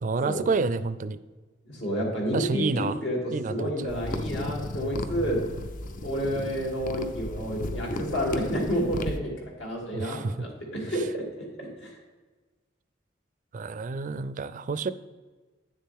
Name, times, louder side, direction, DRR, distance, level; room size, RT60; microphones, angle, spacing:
voice 1, 0.0-1.2 2.3-2.9 3.3-3.9 9.9-10.3 13.5-14.9, right 4 dB, 45° right, 15 dB, 0.4 m, -29 dB
voice 2, 1.7-5.4 6.0-9.3 9.6-11.9, equal, 75° left, -3 dB, 2.8 m, -30 dB
sound 1, 3.9-9.2, left 1 dB, 45° left, 0.6 m, -35 dB
9.6 x 7.3 x 3.6 m, 1.3 s
head